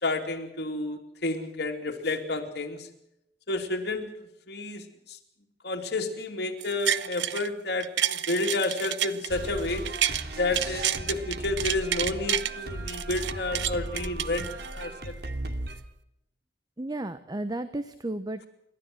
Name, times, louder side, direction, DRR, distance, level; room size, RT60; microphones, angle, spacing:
voice 1, 0.0-2.9 3.5-4.1 4.5-4.8 5.1-5.2 5.6-9.8 10.4-15.2, left 2 dB, 65° left, 3 dB, 3.0 m, -30 dB
sound 1, 6.6-7.5 7.8-10.2 10.5-12.5 12.9-14.9 15.3-15.4, right 10 dB, 80° right, 0.8 m, -29 dB
sound 2, 9.3-15.8, right 1 dB, 60° right, 2.5 m, -36 dB
voice 2, 16.8-18.4, right 1 dB, 20° right, 12 dB, 0.8 m, -33 dB
28.5 x 13.0 x 7.8 m, 0.83 s
head